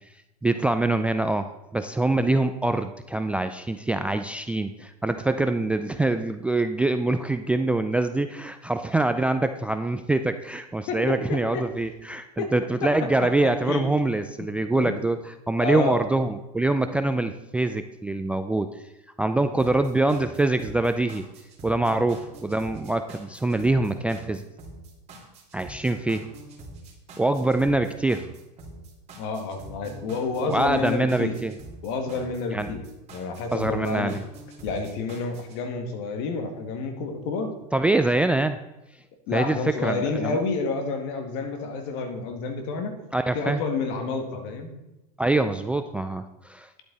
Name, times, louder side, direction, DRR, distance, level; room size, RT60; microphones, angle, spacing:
voice 1, 0.4-18.8 19.2-21.2 21.6-24.4 25.5-26.3 27.2-28.2 30.5-31.5 32.5-32.7 33.5-34.2 37.7-38.6 39.3-40.4 43.1-43.6 45.2-46.7, right 2 dB, 5° right, 9 dB, 0.3 m, -24 dB
voice 2, 10.9-11.7 12.4-12.5 12.8-13.8 14.4-15.0 15.6-16.0 29.2-31.4 31.8-32.8 33.1-34.1 34.6-37.5 39.3-43.0 43.3-44.7, left 4 dB, 55° left, 5 dB, 2.1 m, -29 dB
sound 1, 19.6-35.6, right 2 dB, 30° right, 2.8 m, -44 dB
10.5 x 8.5 x 4.1 m, 0.97 s
supercardioid pair, 125°, 21 cm